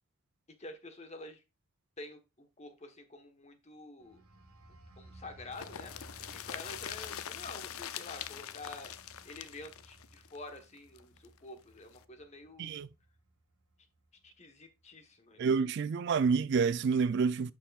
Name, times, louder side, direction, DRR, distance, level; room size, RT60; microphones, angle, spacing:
voice 1, 0.6-1.4 2.0-4.2 5.0-5.9 6.3-8.9 9.2-12.8 14.2-15.7, left 2 dB, 30° left, 1.2 m, -48 dB
sound 1, 4.0-14.4 14.8-15.1, right 1 dB, 85° right, 1.3 m, -57 dB
sound 2, 5.5-11.3 11.6-11.7 11.9-12.0, left 10 dB, 75° left, 0.5 m, -43 dB
voice 2, 15.4-17.5, right 5 dB, 50° right, 0.3 m, -28 dB
11.0 x 5.7 x 2.4 m
head